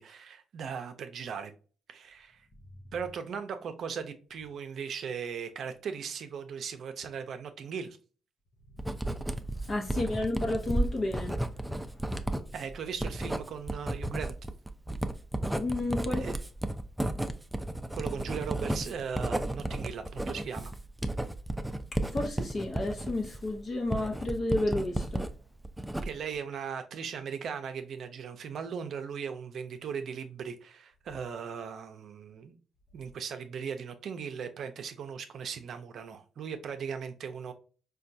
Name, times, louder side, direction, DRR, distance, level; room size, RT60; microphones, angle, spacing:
voice 1, 0.0-1.5 1.9-2.5 2.9-8.0 12.5-14.3 16.2-16.4 17.9-20.7 26.0-32.5 32.9-37.5, right 6 dB, 65° right, 0.5 m, -38 dB
Writing, 8.8-25.3 25.6-26.4, right 1 dB, 5° right, 0.4 m, -33 dB
voice 2, 9.6-12.2 15.5-16.2 21.9-25.3, left 2 dB, 45° left, 0.7 m, -32 dB
4.3 x 2.2 x 2.6 m
cardioid pair, 90°, 0 cm